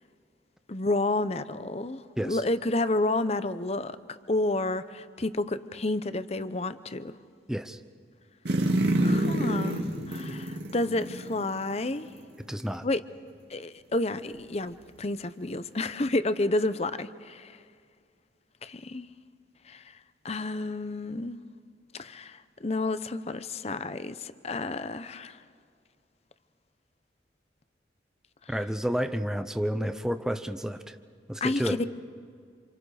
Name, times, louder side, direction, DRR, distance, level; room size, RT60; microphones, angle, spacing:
voice 1, 0.7-7.1 9.0-12.1 12.8-13.0 13.5-17.6 18.6-19.1 19.7-19.8 20.2-21.4 21.9-25.4 31.4-31.9, left 2 dB, 35° left, 0.8 m, -30 dB
voice 2, 7.5-7.8 12.5-12.8 28.5-30.9 31.3-31.8, equal, 5° right, 0.8 m, -30 dB
sound 1, 8.5-11.8 12.2-12.3, right 1 dB, 65° right, 2.2 m, -27 dB
28.5 x 28.0 x 5.0 m
head